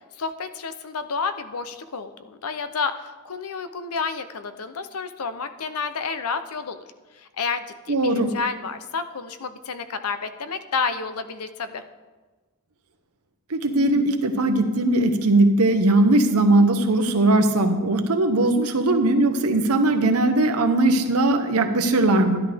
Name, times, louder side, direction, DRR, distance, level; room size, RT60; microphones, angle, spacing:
voice 1, 0.2-6.8 7.1-11.8, left 5 dB, 80° left, 10 dB, 0.7 m, -30 dB
voice 2, 7.9-8.4 13.5-22.4, right 2 dB, 85° right, 7 dB, 1.0 m, -19 dB
12.5 x 10.5 x 3.5 m, 1.3 s
head